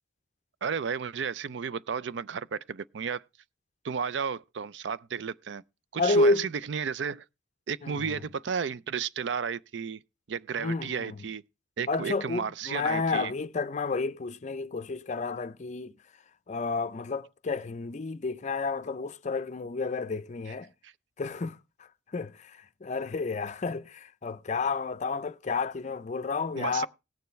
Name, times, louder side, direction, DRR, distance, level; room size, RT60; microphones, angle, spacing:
voice 1, 0.6-3.2 3.8-5.6 5.9-7.2 7.7-10.0 10.3-11.4 11.8-13.3 20.8-20.9 26.6-26.9, right 6 dB, 70° right, 0.4 m, -33 dB
voice 2, 6.0-6.5 7.8-8.2 10.6-11.3 11.9-16.0 16.5-20.7 21.2-26.9, left 3 dB, 40° left, 0.5 m, -30 dB
18.0 x 6.9 x 3.1 m
head